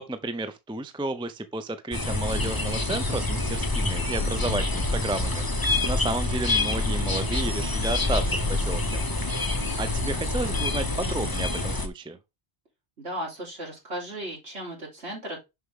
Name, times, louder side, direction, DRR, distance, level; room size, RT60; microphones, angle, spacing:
voice 1, 0.0-9.0 9.3-9.4 9.8-12.2, right 2 dB, 5° right, 0.5 m, -32 dB
sound 1, 1.9-11.9, left 2 dB, 20° left, 1.1 m, -26 dB
voice 2, 13.0-15.4, right 1 dB, 70° right, 3.9 m, -35 dB
6.7 x 5.9 x 3.7 m
omnidirectional pair, 1.1 m